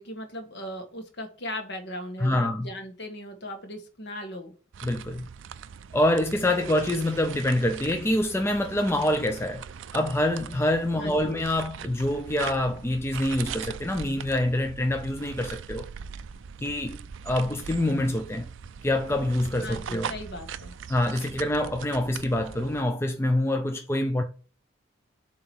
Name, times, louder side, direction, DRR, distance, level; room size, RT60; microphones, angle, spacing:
voice 1, 0.0-4.5 6.5-6.7 11.0-11.4 19.6-20.7, left 1 dB, 55° left, 1.5 m, -38 dB
voice 2, 2.2-2.7 4.8-5.3 5.9-9.6 9.9-15.9 16.6-17.0 17.2-18.5 18.8-20.1 20.9-24.2, left 1 dB, 10° left, 0.4 m, -26 dB
sound 1, 4.7-22.8, right 7 dB, 60° right, 0.4 m, -41 dB
7.5 x 2.9 x 6.0 m
head